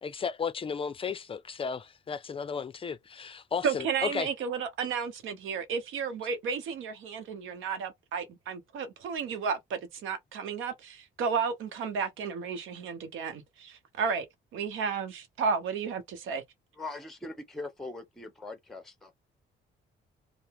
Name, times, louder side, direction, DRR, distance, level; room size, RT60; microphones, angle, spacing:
voice 1, 0.0-4.3, left 6 dB, 25° left, 0.4 m, -34 dB
voice 2, 3.6-14.3 14.5-16.4, right 6 dB, 85° right, 0.7 m, -33 dB
voice 3, 16.7-19.2, left 2 dB, ahead, 0.8 m, -41 dB
2.7 x 2.0 x 3.4 m
cardioid pair, 90°, 20 cm